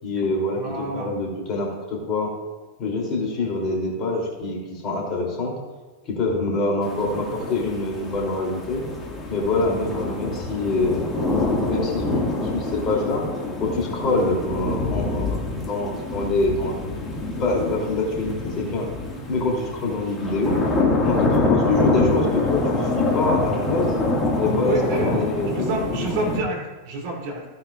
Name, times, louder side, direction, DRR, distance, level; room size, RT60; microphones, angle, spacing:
voice 1, 0.0-2.3 2.8-5.5 6.0-8.8 9.3-13.2 13.6-16.8 17.4-18.9 19.3-20.6 20.9-24.0 24.4-26.1, left 2 dB, 30° left, -1 dB, 3.2 m, -25 dB
voice 2, 0.5-1.1 3.3-3.5 7.3-7.4 15.4-15.6 19.1-19.3 24.6-25.2 25.4-27.4, right 3 dB, 45° right, -2 dB, 3.2 m, -29 dB
sound 1, 6.8-26.4, left 2 dB, 15° left, 2.0 m, -26 dB
15.5 x 9.6 x 2.5 m, 1.3 s
figure-of-eight pair, 90°, 0 cm